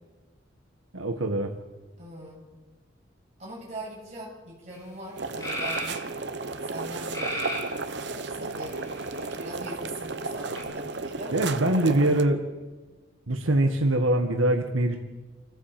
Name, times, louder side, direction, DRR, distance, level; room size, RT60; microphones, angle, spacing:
voice 1, 0.9-1.5 11.3-12.4 13.3-15.0, right 1 dB, 85° right, 3 dB, 1.7 m, -23 dB
voice 2, 2.0-2.4 3.4-6.1 6.6-7.7 8.1-8.8 9.2-11.3, right 1 dB, 35° right, -4 dB, 7.4 m, -41 dB
sound 1, 4.7-4.8 5.4-6.0 7.1-7.7 8.6-9.2 10.5-10.6, equal, 20° left, 6.2 m, -33 dB
sound 2, 5.2-12.2, right 3 dB, 60° right, 1.0 m, -34 dB
26.5 x 14.5 x 7.8 m, 1.3 s
head